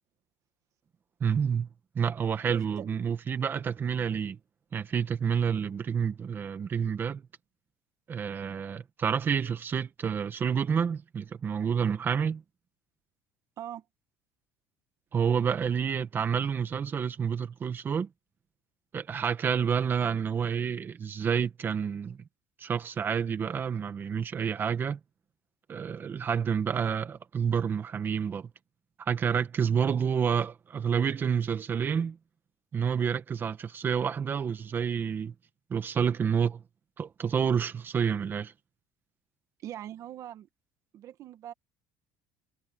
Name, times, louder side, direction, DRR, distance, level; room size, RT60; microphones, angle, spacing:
voice 1, 1.2-1.7 2.0-4.4 4.7-7.2 8.1-12.4 15.1-18.1 18.9-22.2 22.6-25.0 25.7-28.5 29.0-32.2 32.7-35.3 35.7-36.6 37.0-38.5, right 7 dB, 30° right, 1.9 m, -29 dB
voice 2, 2.5-2.9 13.6-13.8 39.6-40.5 40.9-41.5, right 11 dB, 50° right, 2.0 m, -42 dB
cardioid pair, 140°, 7 cm